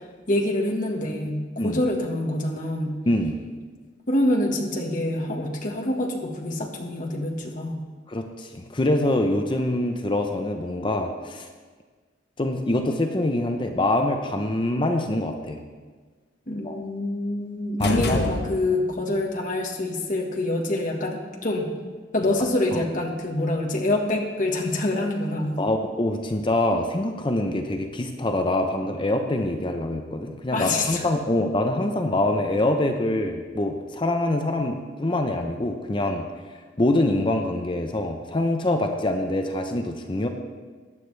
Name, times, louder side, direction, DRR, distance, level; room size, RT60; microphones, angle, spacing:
voice 1, 0.0-3.0 4.1-7.8 16.5-21.7 22.1-25.6 30.5-31.1, left 1 dB, 45° left, 0 dB, 1.4 m, -26 dB
voice 2, 3.1-3.4 8.1-11.5 12.4-15.6 16.6-16.8 17.8-18.2 22.7-22.8 25.0-25.1 25.6-36.3 36.8-40.3, left 1 dB, 25° left, 5 dB, 0.6 m, -25 dB
sound 1, 17.8-19.0, left 2 dB, 60° left, 0.9 m, -27 dB
14.5 x 9.9 x 3.3 m, 1.5 s
head